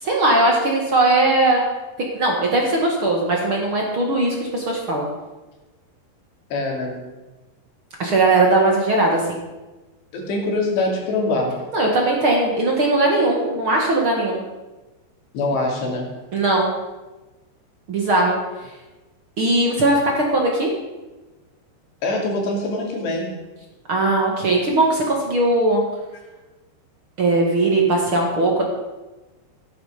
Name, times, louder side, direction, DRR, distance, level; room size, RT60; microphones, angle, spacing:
voice 1, 0.0-1.6 2.1-5.1 8.0-9.4 11.7-14.4 16.3-16.7 17.9-18.4 19.4-20.7 23.9-25.8 27.2-28.6, right 2 dB, 60° right, -1 dB, 1.4 m, -19 dB
voice 2, 6.5-7.0 10.1-11.6 15.3-16.1 22.0-23.3, left 2 dB, 65° left, 0 dB, 4.7 m, -23 dB
15.5 x 11.5 x 5.0 m, 1.1 s
omnidirectional pair, 5.4 m